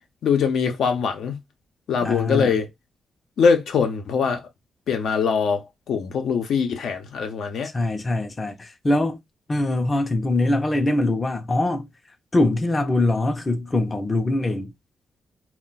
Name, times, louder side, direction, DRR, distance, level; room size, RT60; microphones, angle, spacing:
voice 1, 0.2-1.4 1.9-2.7 3.4-4.4 4.9-7.7, left 6 dB, 75° left, 0.6 m, -22 dB
voice 2, 2.0-2.6 7.7-9.2 9.5-11.9 12.3-14.7, left 2 dB, 25° left, 0.5 m, -23 dB
2.3 x 2.2 x 3.9 m
cardioid pair, 100°, 0 cm